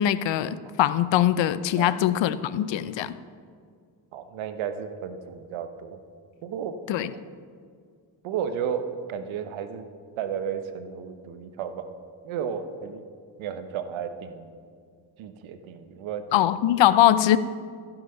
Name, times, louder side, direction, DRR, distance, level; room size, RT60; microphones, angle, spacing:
voice 1, 0.0-3.2 6.9-7.1 16.3-17.4, left 12 dB, 70° left, 15 dB, 0.6 m, -22 dB
voice 2, 4.1-6.0 6.4-7.1 8.2-9.9 10.2-11.9 12.2-13.0 13.4-14.5 15.2-16.4, right 7 dB, 85° right, 9 dB, 0.9 m, -33 dB
15.0 x 6.0 x 5.5 m, 2.1 s
supercardioid pair, 60°, 46 cm